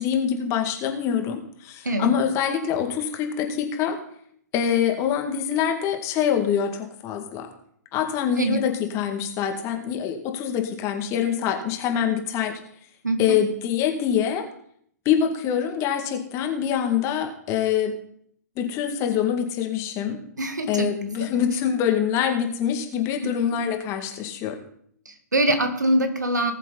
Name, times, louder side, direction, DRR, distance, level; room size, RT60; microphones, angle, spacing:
voice 1, 0.0-4.0 4.5-7.5 7.9-12.6 13.2-14.5 15.1-17.9 18.6-20.2 20.7-24.6, left 8 dB, 30° left, 4 dB, 2.1 m, -25 dB
voice 2, 13.0-13.4 20.4-20.9 21.2-21.3 23.2-23.3 25.1-26.5, right 1 dB, 85° right, 7 dB, 1.9 m, -24 dB
19.0 x 7.4 x 4.0 m, 0.64 s
figure-of-eight pair, 115°, 9 cm